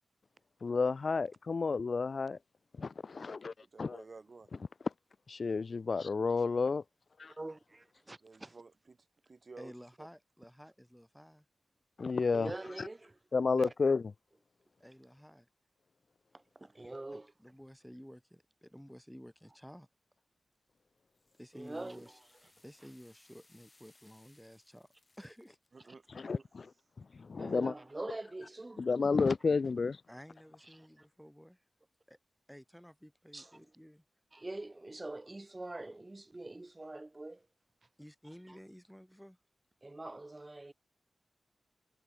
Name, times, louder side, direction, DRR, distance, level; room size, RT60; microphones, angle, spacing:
voice 1, 0.6-2.4 2.8-3.5 3.8-4.0 5.3-6.8 7.2-7.3 12.0-12.5 12.8-12.9 13.3-14.0 26.1-26.7 27.0-27.7 28.8-30.0, left 4 dB, 55° left, 0.3 m, -31 dB
voice 2, 3.6-4.5 8.2-9.0 9.3-9.7 10.0-10.1 25.7-26.4, right 4 dB, 50° right, 1.3 m, -53 dB
voice 3, 7.3-8.6 12.3-13.2 16.3-17.3 21.5-22.1 27.4-28.8 30.7-31.0 33.3-33.7 34.3-37.5 38.5-38.6 39.8-40.7, right 2 dB, 25° right, 0.9 m, -44 dB
voice 4, 9.6-11.4 14.8-15.5 17.1-19.9 21.4-22.2 22.6-24.9 25.2-25.6 30.1-31.6 32.1-32.2 32.5-34.0 38.0-39.4, equal, ahead, 5.1 m, -53 dB
sound 1, 20.5-25.7, left 2 dB, 30° left, 3.2 m, -67 dB
wide cardioid pair, 75°, 0 cm